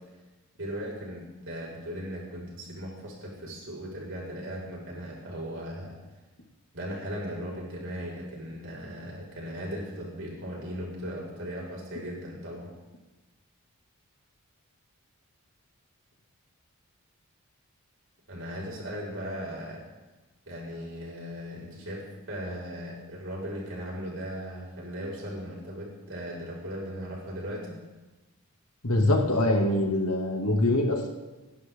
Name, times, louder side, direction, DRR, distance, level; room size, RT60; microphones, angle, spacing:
voice 1, 0.6-6.0 6.7-12.7 18.3-19.8 20.5-27.8, equal, 60° right, -3 dB, 6.0 m, -37 dB
voice 2, 28.8-31.1, left 1 dB, 85° left, 1 dB, 2.7 m, -24 dB
28.5 x 11.5 x 3.9 m, 1.2 s
head